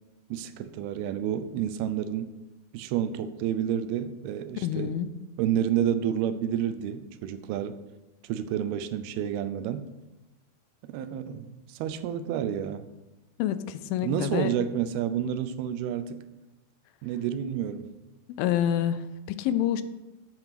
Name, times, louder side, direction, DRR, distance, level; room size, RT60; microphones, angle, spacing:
voice 1, 0.3-2.3 2.7-5.0 5.4-7.8 8.2-9.9 10.9-12.9 14.0-16.2 17.0-17.9, right 9 dB, 90° right, 11 dB, 2.6 m, -30 dB
voice 2, 4.6-5.2 13.4-14.5 18.4-19.8, left 10 dB, 80° left, 13 dB, 2.3 m, -27 dB
9.0 x 7.7 x 5.9 m, 1.0 s
omnidirectional pair, 4.4 m